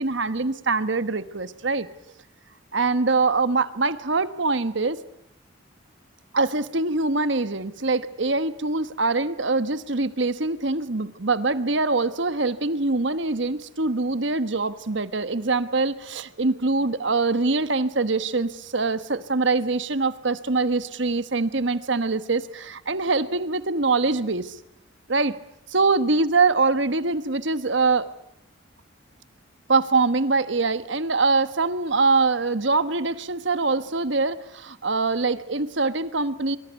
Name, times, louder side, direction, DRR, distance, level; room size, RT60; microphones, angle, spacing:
voice 1, 0.0-1.9 2.7-5.0 6.3-24.6 25.1-25.3 25.7-28.1 29.7-36.6, right 3 dB, 60° right, 12 dB, 1.2 m, -23 dB
24.5 x 24.0 x 8.2 m, 0.73 s
head